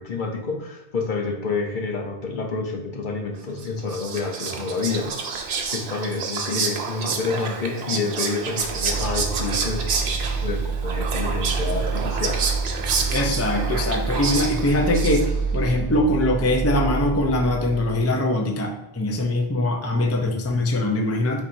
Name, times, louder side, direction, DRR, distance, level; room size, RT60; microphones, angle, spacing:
voice 1, 0.0-5.1 5.7-9.8 10.4-12.4, left 4 dB, 55° left, 2 dB, 0.9 m, -28 dB
Whispering, 3.6-15.6, right 5 dB, 80° right, 0.9 m, -29 dB
sound 1, 8.6-18.2, right 5 dB, 50° right, 0.4 m, -27 dB
voice 2, 13.1-21.4, left 1 dB, 25° left, 2 dB, 0.3 m, -22 dB
4.5 x 4.2 x 2.6 m, 0.96 s
omnidirectional pair, 1.0 m